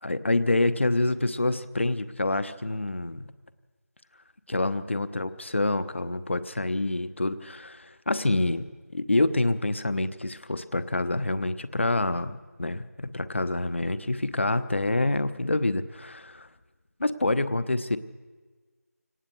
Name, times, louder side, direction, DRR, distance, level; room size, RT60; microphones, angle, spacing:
voice 1, 0.0-3.3 4.5-8.7 8.9-16.5 17.0-18.0, left 2 dB, 45° left, 14 dB, 0.9 m, -27 dB
24.0 x 18.5 x 6.7 m, 1.4 s
figure-of-eight pair, 170°, 9 cm